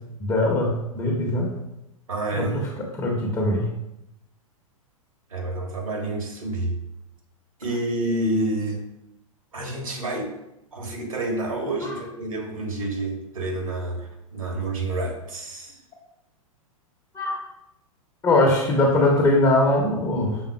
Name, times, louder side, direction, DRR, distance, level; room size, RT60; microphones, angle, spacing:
voice 1, 0.2-1.5 2.4-3.7 11.8-11.9 17.1-17.5 18.2-20.4, left 1 dB, 20° left, 0 dB, 0.7 m, -21 dB
voice 2, 2.1-2.6 5.3-6.8 7.6-8.8 9.5-10.3 10.7-15.8, right 2 dB, 70° right, 1 dB, 1.3 m, -28 dB
6.2 x 3.6 x 2.3 m, 0.85 s
figure-of-eight pair, 100°, 18 cm